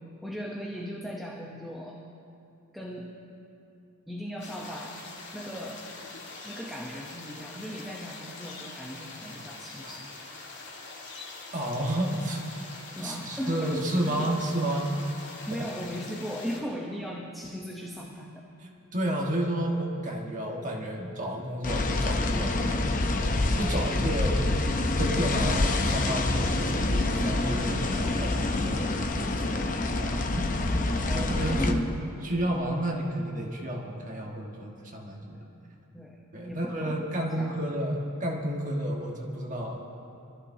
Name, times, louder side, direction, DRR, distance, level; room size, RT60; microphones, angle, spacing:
voice 1, 0.2-2.0 2.7-3.1 4.1-5.0 5.3-6.1 6.4-10.4 13.0-14.3 15.5-18.4 30.1-31.9 35.3-35.4 35.9-36.2 36.5-37.6, equal, ahead, -2 dB, 0.9 m, -38 dB
sound 1, 4.4-16.6, left 3 dB, 55° left, 1.8 m, -44 dB
voice 2, 11.5-12.7 13.0-15.0 18.6-22.5 23.5-24.4 25.0-30.4 31.1-31.8 32.2-35.5 36.3-39.9, right 1 dB, 35° right, -1 dB, 1.5 m, -31 dB
sound 2, 21.6-31.7, left 2 dB, 40° left, 0.7 m, -27 dB
22.5 x 14.0 x 2.8 m, 2.7 s
head